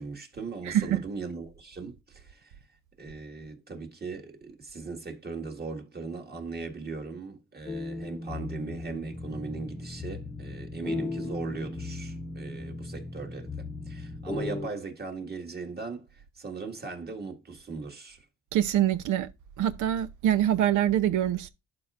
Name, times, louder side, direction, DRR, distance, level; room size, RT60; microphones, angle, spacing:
voice 1, 0.0-2.5 3.0-18.3, right 4 dB, 30° right, 1.9 m, -39 dB
voice 2, 0.7-1.0 18.5-19.3 19.6-21.5, right 11 dB, 80° right, 0.7 m, -25 dB
sound 1, 7.7-14.7, left 2 dB, 15° left, 0.7 m, -37 dB
11.5 x 4.7 x 2.5 m
cardioid pair, 90°, 30 cm